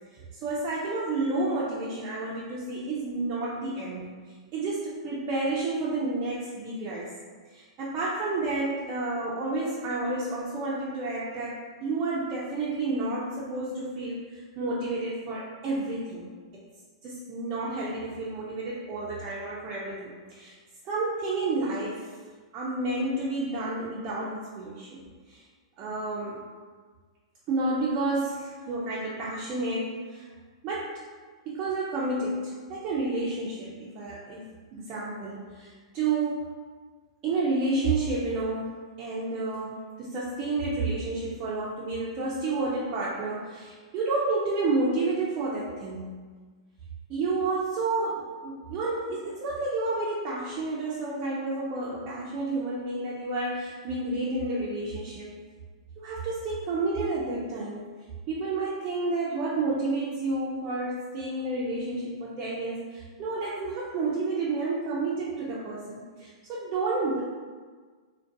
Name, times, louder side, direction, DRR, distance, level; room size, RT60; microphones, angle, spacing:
voice 1, 0.1-4.1 4.5-7.1 7.5-16.6 17.0-20.6 20.8-22.1 22.5-25.4 25.8-26.4 27.5-30.3 30.6-31.0 31.5-36.5 37.2-46.1 47.1-55.3 56.0-57.9 58.3-67.2, right 3 dB, 35° right, -6 dB, 0.4 m, -30 dB
2.4 x 2.2 x 2.5 m, 1.5 s
hypercardioid pair, 120°, 3 cm